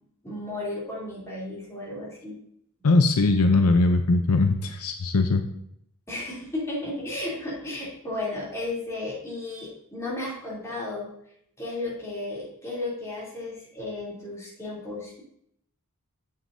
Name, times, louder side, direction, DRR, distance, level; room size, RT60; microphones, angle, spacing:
voice 1, 0.2-2.4 6.1-11.1 11.6-15.2, left 2 dB, 15° left, -7 dB, 2.9 m, -34 dB
voice 2, 2.8-5.4, left 3 dB, 75° left, 6 dB, 0.6 m, -20 dB
8.9 x 7.2 x 2.6 m, 0.72 s
head